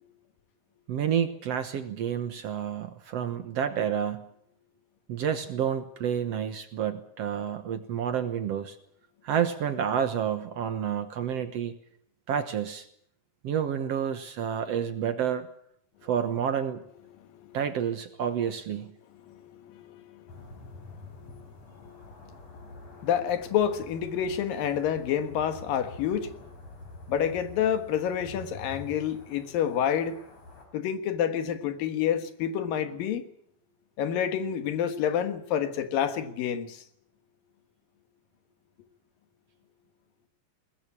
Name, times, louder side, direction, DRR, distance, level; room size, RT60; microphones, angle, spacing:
voice 1, 0.9-4.2 5.1-8.8 9.2-11.7 12.3-12.9 13.4-15.5 16.0-16.8 17.5-18.9, right 8 dB, 60° right, 1.9 m, -29 dB
voice 2, 19.1-20.2 20.5-20.6 21.2-21.5 21.8-26.6 27.1-30.2 30.7-33.3 34.0-36.8, left 9 dB, 85° left, 3.3 m, -29 dB
sound 1, 20.3-30.7, left 2 dB, 50° left, 5.8 m, -47 dB
22.0 x 19.5 x 8.6 m
omnidirectional pair, 3.9 m